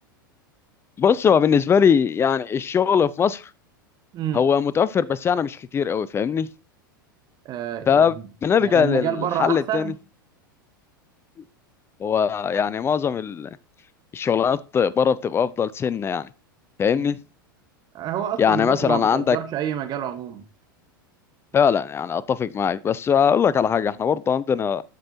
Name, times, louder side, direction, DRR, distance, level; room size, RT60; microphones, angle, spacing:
voice 1, 1.0-3.5 4.3-6.5 7.9-8.1 8.4-9.9 12.0-13.6 14.1-16.3 16.8-17.2 18.4-19.4 21.5-24.8, left 7 dB, 20° left, 0.5 m, -21 dB
voice 2, 7.4-8.2 8.6-10.0 17.0-17.1 17.9-20.4, right 10 dB, 35° right, 1.4 m, -28 dB
14.0 x 5.3 x 2.8 m
figure-of-eight pair, 90°, 11 cm